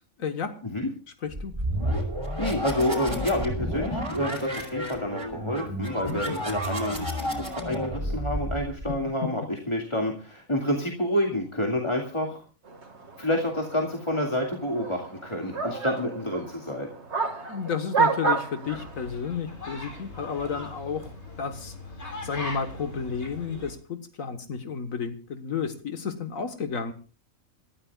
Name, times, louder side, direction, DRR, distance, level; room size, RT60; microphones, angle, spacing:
voice 1, 0.2-0.5 1.2-1.5 6.1-6.3 17.5-22.0 22.2-26.9, left 6 dB, 80° left, 7 dB, 1.8 m, -32 dB
sound 1, 1.3-9.0, equal, 25° right, 4.9 m, -31 dB
voice 2, 2.4-12.4 13.2-16.9, left 1 dB, 20° left, 1 dB, 2.3 m, -28 dB
sound 2, 12.7-19.1, right 4 dB, 55° right, 2.3 m, -30 dB
sound 3, 18.6-23.7, left 1 dB, 55° left, 4.8 m, -40 dB
27.5 x 14.0 x 2.4 m, 0.37 s
omnidirectional pair, 1.4 m